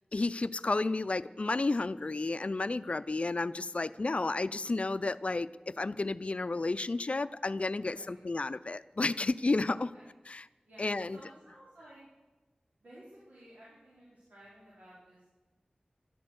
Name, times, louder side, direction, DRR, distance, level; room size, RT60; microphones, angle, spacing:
voice 1, 0.1-9.9 10.3-10.4 10.8-11.2, left 3 dB, 50° left, 15 dB, 0.5 m, -32 dB
voice 2, 7.8-8.3 9.7-10.0 10.6-12.0 12.8-15.3, right 1 dB, 85° right, -8 dB, 4.1 m, -55 dB
12.5 x 11.0 x 8.0 m, 1.2 s
wide cardioid pair, 70°, 3 cm